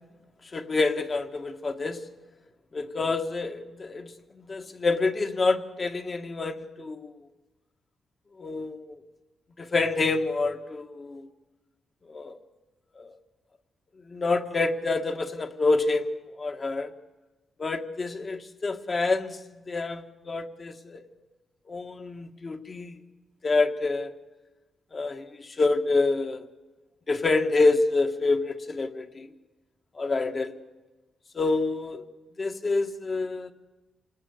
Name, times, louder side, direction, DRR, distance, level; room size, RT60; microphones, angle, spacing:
voice 1, 0.5-2.0 2.7-7.1 8.4-8.8 9.6-11.3 12.1-12.4 13.0-13.1 14.1-16.1 16.4-16.9 17.6-19.4 19.6-21.0 21.7-23.0 23.4-24.1 24.9-26.5 27.1-29.3 30.0-30.5 31.4-32.0 32.4-33.5, left 3 dB, 40° left, 6 dB, 1.8 m, -27 dB
28.0 x 20.0 x 8.3 m, 1.2 s
cardioid pair, 85°, 0 cm